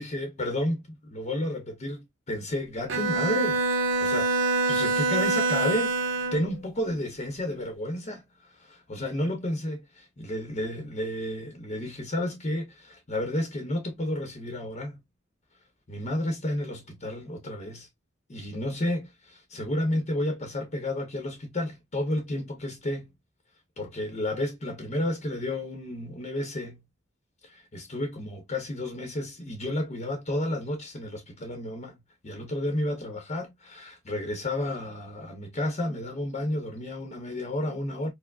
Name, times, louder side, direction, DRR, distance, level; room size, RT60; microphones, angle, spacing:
voice 1, 0.0-3.6 4.0-4.3 4.7-6.0 6.3-8.2 8.6-14.9 15.9-17.9 18.3-23.1 23.8-26.8 27.4-32.0 32.2-38.1, left 1 dB, 35° left, 0.8 m, -31 dB
Bowed string instrument, 2.9-6.5, right 3 dB, 70° right, 1.0 m, -25 dB
4.6 x 2.0 x 2.2 m
head